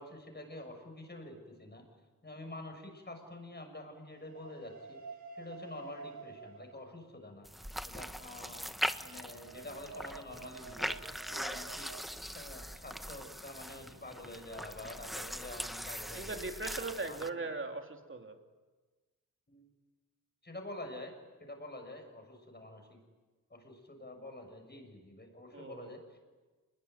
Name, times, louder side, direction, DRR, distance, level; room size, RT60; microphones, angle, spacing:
voice 1, 0.0-1.9 2.2-5.0 5.3-7.5 7.9-8.7 9.0-11.0 11.3-11.9 12.3-16.4 17.0-17.5 19.5-19.7 20.4-21.1 21.4-23.0 23.5-26.2, left 1 dB, 30° left, 5 dB, 6.9 m, -47 dB
sound 1, 4.1-7.0 8.9-12.0, right 4 dB, 55° right, 4.8 m, -50 dB
sound 2, 7.5-17.3, equal, ahead, 1.0 m, -41 dB
voice 2, 16.1-18.4 25.5-25.9, right 3 dB, 35° right, 4 dB, 3.1 m, -39 dB
28.0 x 21.5 x 9.6 m, 1.3 s
wide cardioid pair, 90°, 34 cm